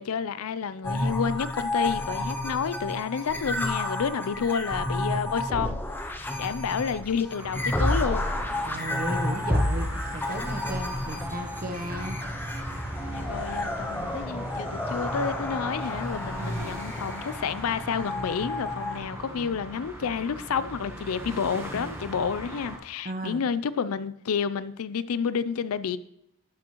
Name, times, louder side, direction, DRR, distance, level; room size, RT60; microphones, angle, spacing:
voice 1, 0.0-5.8 6.1-8.3 13.1-26.0, left 6 dB, 90° left, 0.4 m, -30 dB
sound 1, 0.8-19.0, left 1 dB, 10° left, 0.6 m, -31 dB
sound 2, 7.4-22.8, right 1 dB, 10° right, 1.0 m, -38 dB
voice 2, 8.6-12.2 16.4-16.8 19.2-19.5 23.0-23.5, right 1 dB, 40° right, 0.9 m, -35 dB
12.0 x 6.1 x 3.0 m
head